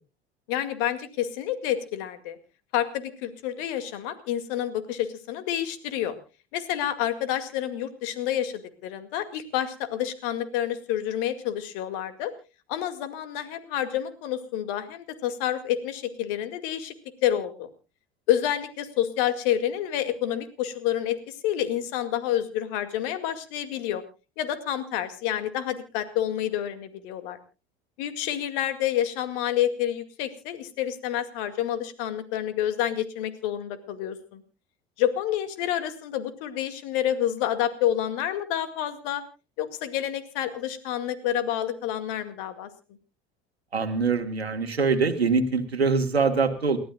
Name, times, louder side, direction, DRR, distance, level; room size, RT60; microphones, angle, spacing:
voice 1, 0.5-2.4 2.7-6.2 6.5-12.3 12.7-16.9 17.2-17.7 18.3-24.0 24.4-27.4 28.0-34.4 35.0-39.2 39.6-42.7, left 11 dB, 60° left, 10 dB, 2.2 m, -28 dB
voice 2, 43.7-46.8, right 4 dB, 90° right, 6 dB, 1.4 m, -24 dB
29.0 x 12.5 x 2.3 m, 0.32 s
figure-of-eight pair, 70°, 31 cm